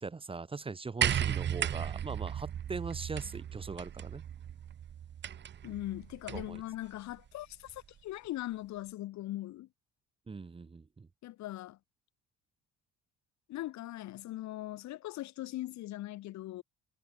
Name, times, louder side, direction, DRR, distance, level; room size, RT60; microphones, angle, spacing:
voice 1, 0.0-4.2 5.6-5.7 6.3-6.6 10.3-11.1, right 4 dB, 20° right, 1.9 m, -41 dB
sound 1, 1.0-6.6 7.7-7.8, right 9 dB, 35° right, 1.1 m, -35 dB
voice 2, 5.6-9.7 11.2-11.8 13.5-16.6, left 15 dB, 70° left, 2.9 m, -40 dB
cardioid pair, 140°, 29 cm